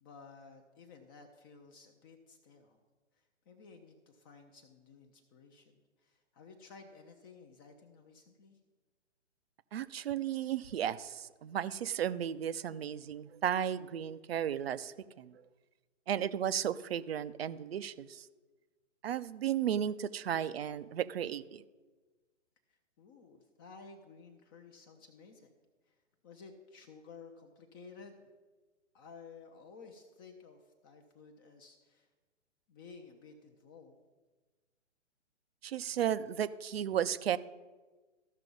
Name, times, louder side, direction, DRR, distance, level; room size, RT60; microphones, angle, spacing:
voice 1, 0.0-2.8 3.1-8.6 22.7-25.5 25.8-28.3 28.9-32.1 32.7-34.0, left 4 dB, 20° left, 4 dB, 0.6 m, -55 dB
voice 2, 9.7-15.4 16.1-18.3 19.0-21.6 35.6-37.4, right 10 dB, 55° right, 16 dB, 0.6 m, -34 dB
14.0 x 5.9 x 5.2 m, 1.3 s
hypercardioid pair, 135°, 36 cm